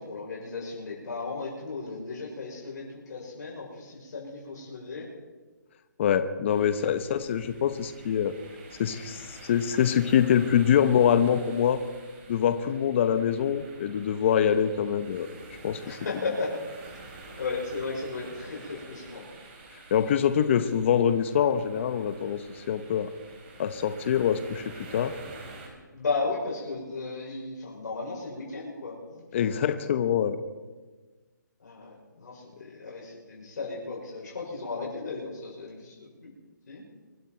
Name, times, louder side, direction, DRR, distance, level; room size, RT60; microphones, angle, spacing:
voice 1, 0.0-5.1 6.6-6.7 15.8-16.6 16.8-16.9 17.4-19.2 25.9-29.7 31.6-36.3 36.7-36.8, left 3 dB, 60° left, -4 dB, 6.0 m, -35 dB
voice 2, 6.0-8.4 8.8-11.8 12.3-15.3 15.6-16.0 19.9-23.1 23.6-25.2 29.3-30.4, left 8 dB, 40° left, 11 dB, 0.9 m, -24 dB
sound 1, 6.5-25.7, right 3 dB, 35° right, 4.3 m, -48 dB
24.5 x 11.5 x 4.5 m, 1.3 s
hypercardioid pair, 155°, 10 cm